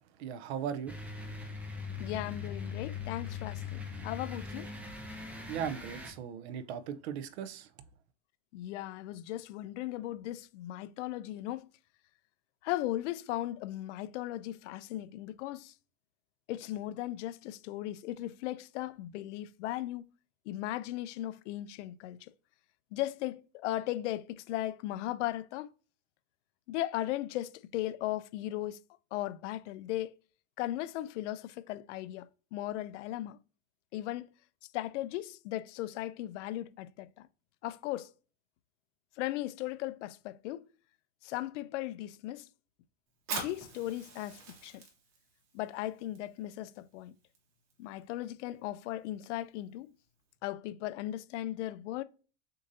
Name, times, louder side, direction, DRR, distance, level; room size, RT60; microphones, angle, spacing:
voice 1, 0.2-0.9 5.5-7.7, right 8 dB, 60° right, 0.6 m, -37 dB
sound 1, 0.9-6.1, left 5 dB, 5° right, 0.3 m, -41 dB
voice 2, 2.0-4.7 8.5-11.7 12.6-15.7 16.5-20.0 20.5-22.3 22.9-25.7 26.7-28.8 29.1-30.1 30.6-33.4 33.9-34.3 34.7-37.3 37.6-38.1 39.2-40.6 41.2-42.5 43.3-44.8 45.5-47.1 47.8-49.9 50.4-52.0, left 14 dB, 70° left, 0.5 m, -37 dB
Fire, 43.1-50.4, right 4 dB, 45° right, 1.6 m, -46 dB
6.4 x 2.7 x 2.6 m
supercardioid pair, 145°, 37 cm